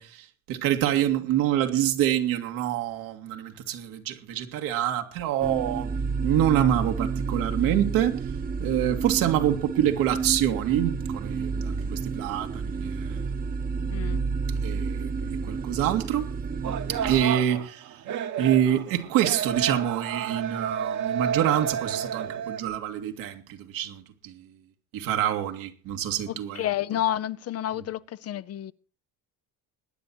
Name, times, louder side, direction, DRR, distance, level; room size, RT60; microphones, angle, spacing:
voice 1, 0.0-5.9 6.2-8.2 8.6-13.2 14.6-16.3 16.9-18.0 18.4-24.5 24.9-26.6, right 11 dB, 80° right, 2.3 m, -26 dB
sound 1, 5.4-17.2, right 5 dB, 25° right, 1.1 m, -30 dB
voice 2, 13.9-14.2 26.3-28.7, left 12 dB, 45° left, 0.7 m, -30 dB
sound 2, 16.6-22.6, right 8 dB, 60° right, 1.6 m, -31 dB
21.5 x 9.9 x 4.4 m
cardioid pair, 105°, 33 cm